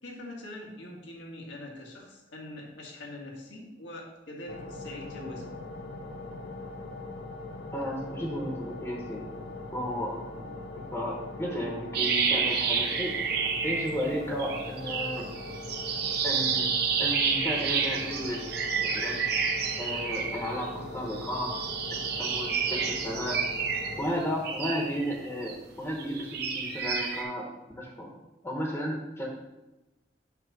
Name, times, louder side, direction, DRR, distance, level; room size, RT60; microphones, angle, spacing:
voice 1, 0.0-5.5, left 1 dB, 90° left, -1 dB, 1.7 m, -43 dB
sound 1, 4.5-24.1, left 2 dB, 65° left, 0.8 m, -41 dB
voice 2, 7.7-9.2 9.7-10.5 10.9-13.2 13.6-15.3 16.2-16.7 17.0-18.4 18.8-19.2 19.8-21.5 22.2-23.4 24.0-27.5 27.8-28.1 28.4-29.3, equal, 15° left, -2 dB, 1.0 m, -33 dB
sound 2, 11.9-14.1 14.4-20.7 21.1-25.5 26.0-27.2, right 6 dB, 60° right, 1.0 m, -30 dB
8.0 x 3.0 x 6.0 m, 1.0 s
head